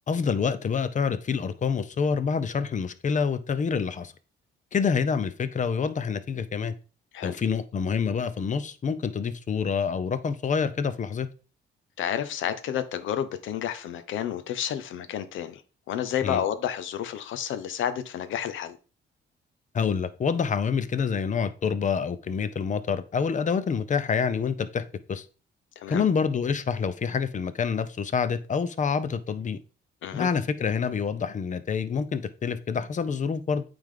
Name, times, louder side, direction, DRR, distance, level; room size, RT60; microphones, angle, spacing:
voice 1, 0.1-4.1 4.7-6.7 7.2-11.3 16.2-16.4 19.7-25.3 25.9-29.6 30.1-33.6, left 6 dB, 40° left, 0.7 m, -27 dB
voice 2, 12.0-15.6 15.9-18.8 25.8-26.0 30.0-30.3, left 10 dB, 80° left, 0.8 m, -30 dB
8.7 x 3.5 x 3.8 m
cardioid pair, 90°, 20 cm